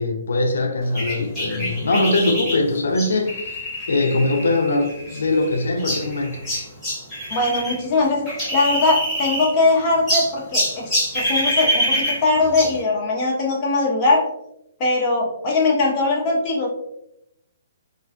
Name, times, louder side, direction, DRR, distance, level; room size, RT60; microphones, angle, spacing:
voice 1, 0.0-6.4, left 2 dB, 85° left, 0.4 m, -22 dB
sound 1, 0.9-7.8 8.0-9.7 10.1-12.8, equal, 5° left, 1.2 m, -25 dB
voice 2, 7.3-8.3 8.5-14.2 14.8-16.7, left 3 dB, 30° left, 0.7 m, -20 dB
2.5 x 2.2 x 2.5 m
hypercardioid pair, 160°, 0 cm